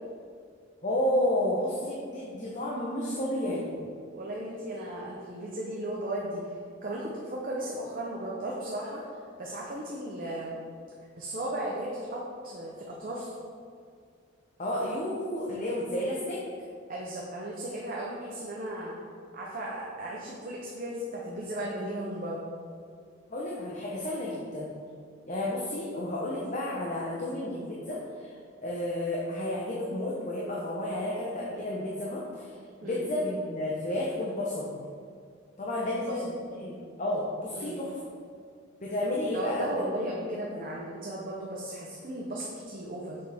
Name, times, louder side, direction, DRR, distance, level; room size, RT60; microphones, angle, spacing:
voice 1, 0.8-3.8 14.6-16.4 23.3-24.8 25.3-28.3 28.6-32.5 32.8-34.8 35.6-36.3 36.6-38.0 38.8-39.6 40.1-40.2 40.5-40.6, left 1 dB, 40° left, -4 dB, 0.9 m, -31 dB
voice 2, 4.1-6.5 6.8-9.0 9.4-10.5 11.2-13.3 16.9-19.0 19.3-22.4 32.8-33.0 36.2-36.3 37.5-37.8 39.3-43.2, right 1 dB, 45° right, -4 dB, 0.8 m, -36 dB
6.6 x 6.4 x 3.5 m, 2.2 s
head